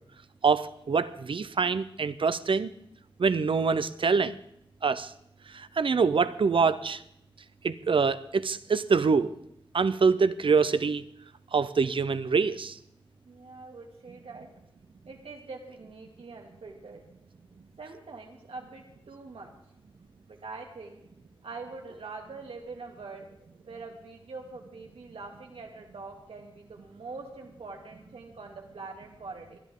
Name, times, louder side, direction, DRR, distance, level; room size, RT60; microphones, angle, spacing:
voice 1, 0.4-2.7 3.2-4.4 4.8-5.1 5.5-7.0 7.6-9.3 9.7-11.0 11.5-12.8, right 5 dB, 65° right, 14 dB, 0.6 m, -25 dB
voice 2, 13.3-14.5 15.0-17.0 17.8-19.5 20.3-21.0 21.4-23.3 23.6-29.6, right 3 dB, 85° right, 1 dB, 2.3 m, -44 dB
21.0 x 11.5 x 3.7 m, 0.75 s
wide cardioid pair, 75°, 10 cm